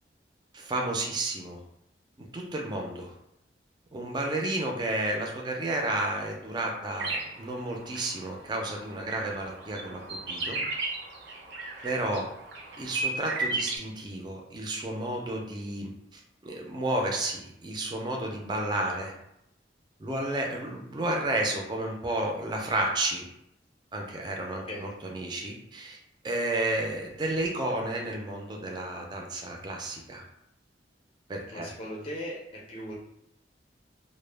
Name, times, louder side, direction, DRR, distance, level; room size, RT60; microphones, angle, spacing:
voice 1, 0.5-1.6 2.3-3.1 3.9-10.6 11.8-12.3 12.8-19.1 20.0-23.3 23.9-26.0 26.2-30.2 31.3-31.7, right 1 dB, 25° right, 0 dB, 0.4 m, -32 dB
sound 1, 6.9-13.8, right 3 dB, 75° right, 0.6 m, -35 dB
voice 2, 31.5-32.9, equal, 30° left, -4 dB, 0.5 m, -38 dB
2.1 x 2.0 x 3.2 m, 0.79 s
head